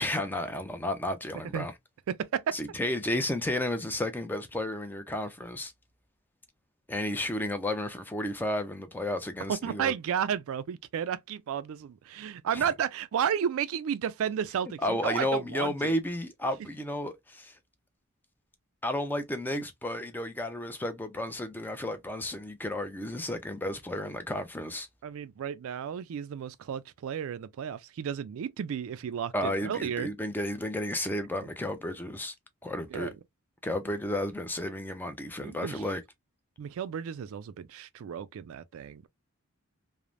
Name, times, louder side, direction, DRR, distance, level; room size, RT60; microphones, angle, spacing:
voice 1, 0.0-1.7 2.5-5.7 6.9-9.9 12.5-12.6 14.8-17.6 18.8-24.9 29.3-32.3 32.6-33.1 33.6-36.0, left 1 dB, 10° left, 0.4 m, -32 dB
voice 2, 2.1-2.5 9.5-15.9 25.0-30.1 32.9-33.1 35.4-35.8 36.6-39.1, right 8 dB, 65° right, 0.3 m, -33 dB
3.1 x 2.0 x 2.4 m
head